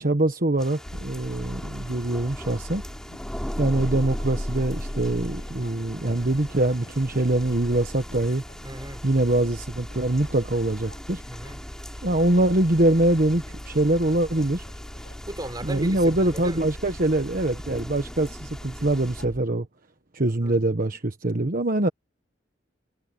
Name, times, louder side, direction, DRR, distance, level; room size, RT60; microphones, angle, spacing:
voice 1, 0.0-2.8 3.6-8.4 9.0-11.2 12.0-14.6 15.6-19.7 20.1-21.9, right 1 dB, 50° right, 1.3 m, -23 dB
sound 1, 0.6-19.2, equal, 5° left, 4.6 m, -42 dB
sound 2, 0.8-19.4, left 1 dB, 60° left, 2.4 m, -38 dB
voice 2, 8.6-9.0 11.2-11.7 15.3-16.6 20.3-20.6, right 1 dB, 20° right, 5.6 m, -36 dB
head